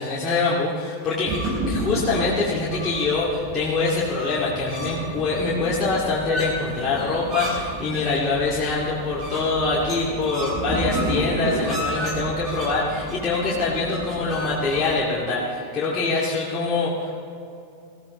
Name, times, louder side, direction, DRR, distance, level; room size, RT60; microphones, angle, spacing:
voice 1, 0.0-1.4 1.7-17.1, left 3 dB, 20° left, -7 dB, 2.2 m, -24 dB
sound 1, 1.3-14.9, equal, 30° right, 3.9 m, -31 dB
20.0 x 15.0 x 3.2 m, 2.6 s
figure-of-eight pair, 90°, 0 cm